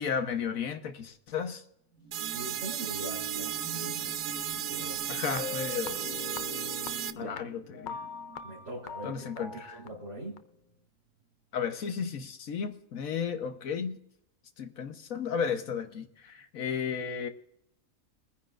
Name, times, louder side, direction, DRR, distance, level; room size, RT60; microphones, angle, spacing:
voice 1, 0.0-1.6 5.1-6.0 7.2-8.0 9.0-9.8 11.5-14.0 14.6-17.3, left 6 dB, 75° left, 1.4 m, -34 dB
sound 1, 1.9-9.7 10.2-10.3, right 2 dB, 20° left, 4.6 m, -46 dB
sound 2, 2.1-7.1, right 10 dB, 80° right, 1.1 m, -35 dB
voice 2, 2.2-5.0 7.2-7.4 8.4-9.5 9.7-10.4, right 1 dB, 55° right, 3.8 m, -43 dB
sound 3, 5.3-10.4, left 6 dB, 50° left, 0.6 m, -42 dB
23.5 x 9.9 x 2.5 m
omnidirectional pair, 1.5 m